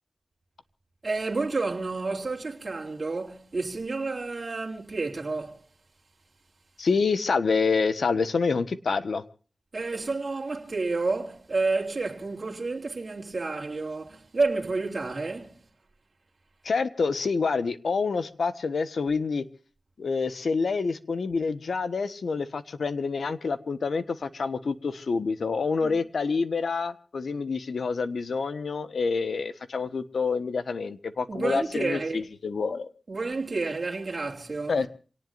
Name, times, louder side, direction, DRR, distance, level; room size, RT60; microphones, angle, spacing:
voice 1, 1.0-5.6 9.7-15.6 25.8-26.0 31.3-32.2 33.1-34.8, right 3 dB, 45° right, 3.3 m, -30 dB
voice 2, 6.8-9.2 16.6-19.5 20.0-32.9 34.7-34.9, left 4 dB, 80° left, 1.3 m, -27 dB
27.5 x 18.5 x 2.6 m
wide cardioid pair, 85°, 0 cm